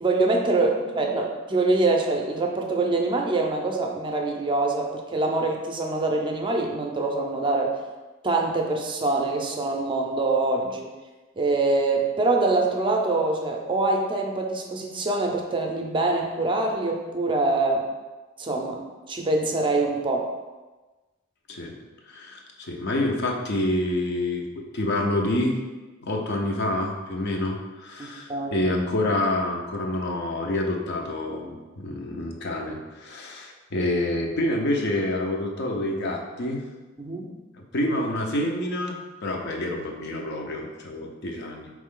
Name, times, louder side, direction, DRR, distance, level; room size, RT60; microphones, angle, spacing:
voice 1, 0.0-7.8 8.2-10.9 11.4-17.9 18.4-18.8 19.1-20.3 28.0-28.6 37.0-37.3, right 2 dB, 25° right, 1 dB, 0.5 m, -24 dB
voice 2, 22.1-24.5 24.7-25.6 26.0-36.6 37.7-41.8, left 1 dB, 60° left, 1 dB, 0.6 m, -27 dB
4.3 x 3.1 x 3.7 m, 1.2 s
head